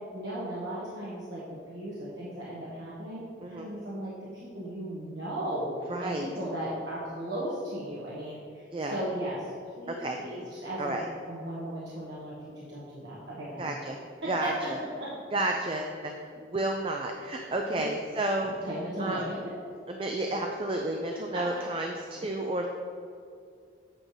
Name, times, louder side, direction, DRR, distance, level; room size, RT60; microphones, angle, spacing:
voice 1, 0.1-5.7 6.0-8.6 8.9-9.4 9.8-13.7 14.2-14.5 15.0-15.1 17.7-17.8 18.4-19.2 21.3-21.4, right 1 dB, 80° right, -8 dB, 1.4 m, -36 dB
voice 2, 5.9-6.3 8.7-9.0 9.9-10.2 10.8-11.0 13.6-14.0 14.3-14.5 15.3-18.5 19.0-19.3 19.9-22.7, right 2 dB, 30° right, 2 dB, 0.4 m, -31 dB
8.6 x 3.3 x 6.2 m, 2.3 s
head